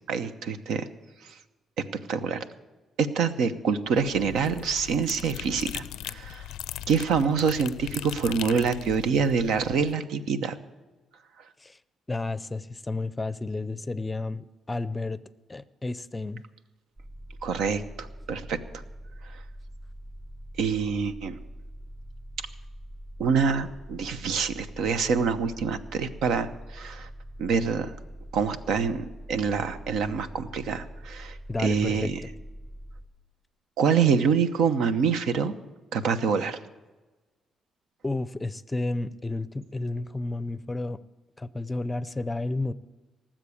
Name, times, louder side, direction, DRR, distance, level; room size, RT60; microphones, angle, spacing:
voice 1, 0.1-0.9 1.2-1.3 2.1-2.4 3.0-6.5 6.9-10.6 17.4-18.6 19.3-19.4 20.6-21.3 23.2-27.1 27.4-27.9 28.3-32.2 33.8-35.5 35.9-36.6, right 6 dB, 80° right, 11 dB, 0.9 m, -26 dB
sound 1, 3.8-10.0, left 13 dB, 90° left, 0.4 m, -39 dB
voice 2, 12.1-15.2 15.5-16.4 31.5-32.1 38.0-41.0 41.4-42.7, left 2 dB, 20° left, 16 dB, 0.5 m, -31 dB
sound 2, 17.0-33.0, equal, 25° right, 5.6 m, -43 dB
18.5 x 7.5 x 8.5 m, 1.2 s
cardioid pair, 90°, 0 cm